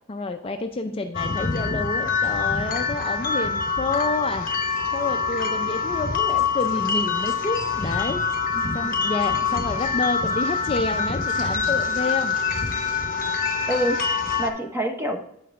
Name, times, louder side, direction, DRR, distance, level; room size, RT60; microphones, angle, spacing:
voice 1, 0.1-4.5 4.9-8.2 8.7-12.4, left 3 dB, 30° left, 6 dB, 0.4 m, -29 dB
sound 1, 1.1-14.5, left 5 dB, 45° left, 0.8 m, -25 dB
voice 2, 8.5-8.9 13.7-15.2, equal, 10° right, 3 dB, 0.9 m, -28 dB
8.5 x 5.7 x 3.4 m, 0.75 s
head